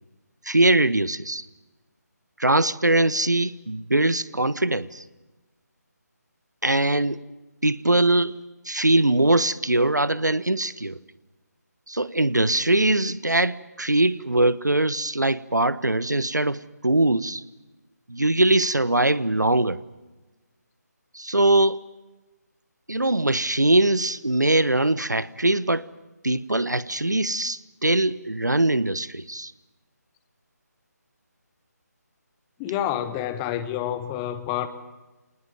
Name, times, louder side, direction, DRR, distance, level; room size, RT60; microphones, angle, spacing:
voice 1, 0.4-1.5 2.4-5.0 6.6-7.2 7.6-8.4 8.6-11.0 11.9-17.4 18.1-19.8 21.1-21.8 22.9-25.9 26.2-29.5, right 2 dB, 80° right, 1.1 m, -22 dB
voice 2, 32.6-34.7, left 11 dB, 10° left, 1.0 m, -28 dB
26.5 x 19.5 x 7.8 m
figure-of-eight pair, 150°, 9 cm